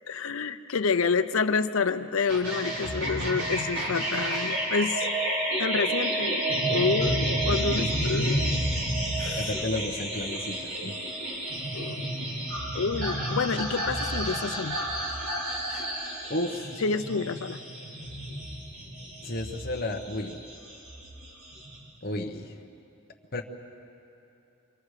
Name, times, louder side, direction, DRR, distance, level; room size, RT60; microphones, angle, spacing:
voice 1, 0.1-5.1 5.6-6.4 6.7-8.7 9.2-9.5 11.7-12.0 12.7-14.8 15.7-15.9 16.8-17.6, left 5 dB, 75° left, 10 dB, 0.6 m, -28 dB
sound 1, 2.3-21.8, right 1 dB, 80° right, 5.8 m, -30 dB
voice 2, 9.3-11.0 16.3-16.8 19.2-20.4 22.0-22.6 23.3-23.4, left 1 dB, 45° left, 1 dB, 1.1 m, -32 dB
27.0 x 24.5 x 4.9 m, 2.8 s
head